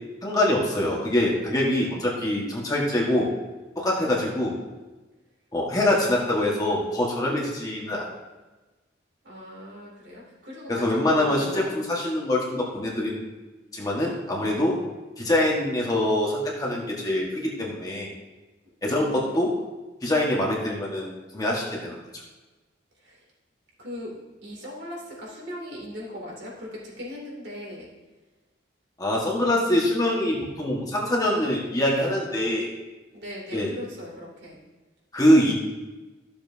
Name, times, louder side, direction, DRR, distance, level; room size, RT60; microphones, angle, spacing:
voice 1, 0.2-3.3 3.7-4.6 5.5-8.1 10.7-13.3 13.7-14.8 15.2-18.1 18.8-19.5 20.0-21.1 21.3-22.0 29.0-32.7 33.5-33.7 35.1-35.5, left 1 dB, 20° left, -3 dB, 1.5 m, -24 dB
voice 2, 5.9-6.7 9.2-11.6 18.8-19.4 23.0-23.2 23.8-24.1 24.4-27.9 33.1-34.6, left 1 dB, 65° right, -4 dB, 2.8 m, -39 dB
13.5 x 7.2 x 2.7 m, 1.2 s
head